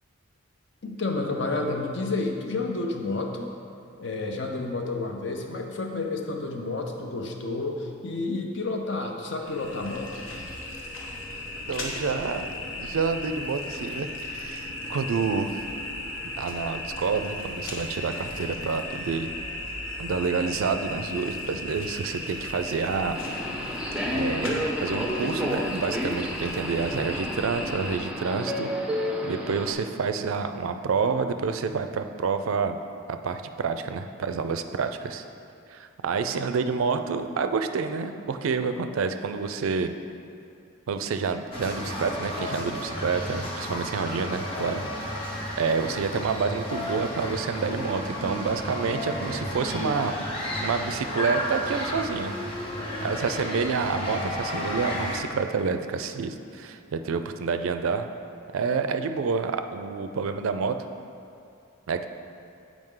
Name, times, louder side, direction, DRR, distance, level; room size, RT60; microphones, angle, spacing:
voice 1, 0.8-3.5 4.0-10.2, left 3 dB, 55° left, 3 dB, 0.6 m, -30 dB
sound 1, 9.4-28.0, left 2 dB, 75° left, 1.0 m, -36 dB
voice 2, 11.7-12.5 12.8-15.6 16.4-19.3 20.0-23.2 24.1-28.7 29.2-32.8 33.2-35.2 35.7-39.9 40.9-44.8 45.6-50.1 50.6-52.4 53.0-58.1 58.5-60.8 61.9-62.1, right 5 dB, 75° right, 8 dB, 0.4 m, -28 dB
Subway metro underground, 23.1-29.7, equal, 5° right, 0.4 m, -31 dB
sound 2, 41.5-55.2, left 1 dB, 25° left, 0.9 m, -32 dB
7.8 x 4.9 x 3.7 m, 2.5 s
head